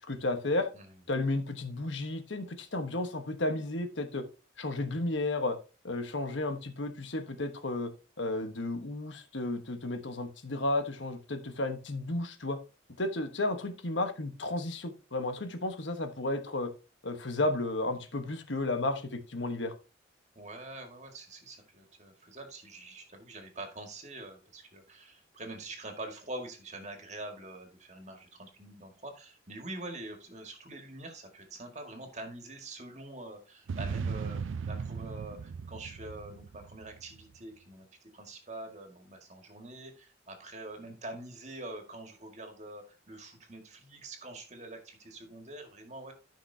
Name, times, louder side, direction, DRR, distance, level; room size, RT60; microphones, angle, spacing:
voice 1, 0.1-0.7 1.1-4.2 4.6-5.6 5.8-7.9 8.2-12.6 13.0-16.7 17.0-19.7, left 2 dB, 75° left, 8 dB, 1.2 m, -33 dB
voice 2, 20.4-34.4 34.7-37.9 38.1-46.1, right 2 dB, 35° right, 4 dB, 2.0 m, -45 dB
sound 1, 33.7-37.2, right 5 dB, 90° right, 0.4 m, -37 dB
13.5 x 5.9 x 2.8 m, 0.32 s
head